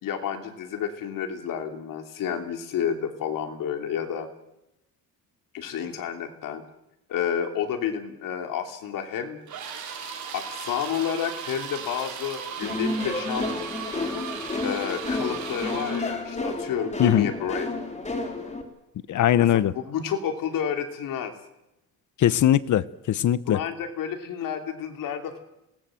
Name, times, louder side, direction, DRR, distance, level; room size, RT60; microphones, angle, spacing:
voice 1, 0.0-4.3 5.5-6.6 7.1-9.4 10.3-13.5 14.6-17.7 19.4-21.3 23.5-25.4, left 8 dB, 90° left, 5 dB, 3.1 m, -30 dB
sound 1, 9.5-16.2, right 6 dB, 60° right, 5.3 m, -37 dB
sound 2, 12.6-18.6, left 2 dB, 20° left, 3.7 m, -31 dB
voice 2, 17.0-17.3 19.1-19.7 22.2-23.6, left 11 dB, 65° left, 17 dB, 1.0 m, -20 dB
27.0 x 19.5 x 7.8 m, 0.90 s
cardioid pair, 120°, 32 cm